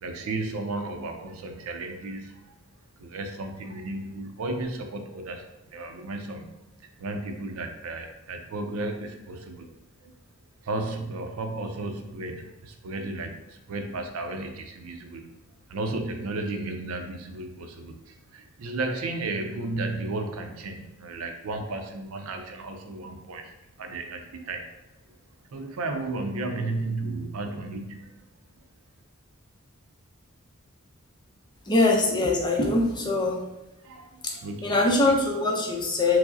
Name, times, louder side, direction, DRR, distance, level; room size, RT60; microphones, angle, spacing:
voice 1, 0.0-2.5 3.0-6.5 7.0-9.7 10.0-10.1 10.6-15.3 15.7-23.5 23.8-24.7 25.5-28.1 33.8-35.0, right 2 dB, 75° right, 5 dB, 0.5 m, -34 dB
voice 2, 31.7-33.5 34.2-36.2, left 2 dB, 20° left, -1 dB, 0.5 m, -23 dB
4.6 x 2.0 x 2.6 m, 0.95 s
head